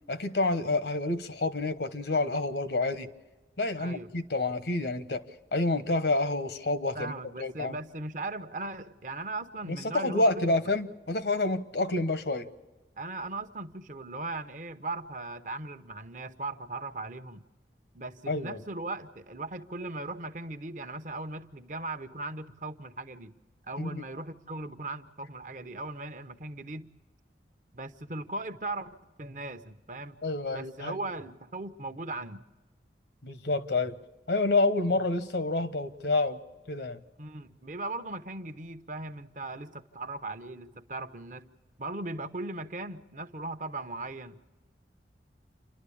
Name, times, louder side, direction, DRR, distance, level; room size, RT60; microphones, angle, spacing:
voice 1, 0.1-3.1 3.6-5.2 5.5-7.1 7.4-7.8 9.7-12.5 18.3-18.6 23.8-24.0 30.2-31.0 33.2-34.0 34.3-36.4 36.7-37.0, left 2 dB, 70° left, 12 dB, 1.1 m, -28 dB
voice 2, 3.8-4.1 6.9-10.7 13.0-17.4 17.9-23.3 23.6-26.9 27.7-30.2 30.5-32.4 34.9-35.0 37.2-41.5 41.8-44.4, right 2 dB, 45° right, 10 dB, 0.9 m, -38 dB
28.5 x 12.0 x 8.5 m, 1.2 s
head